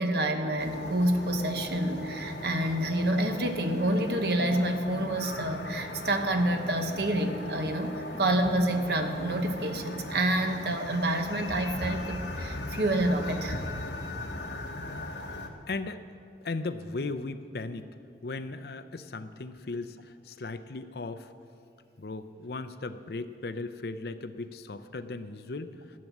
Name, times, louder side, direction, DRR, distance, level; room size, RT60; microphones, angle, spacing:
voice 1, 0.0-13.6, right 1 dB, 65° right, 6 dB, 1.1 m, -28 dB
sound 1, 0.6-15.5, left 2 dB, 80° left, 1.3 m, -38 dB
voice 2, 15.7-16.0 16.4-17.9 18.2-21.3 22.0-25.7, left 3 dB, 60° left, 11 dB, 0.6 m, -37 dB
14.0 x 8.5 x 7.2 m, 2.5 s
head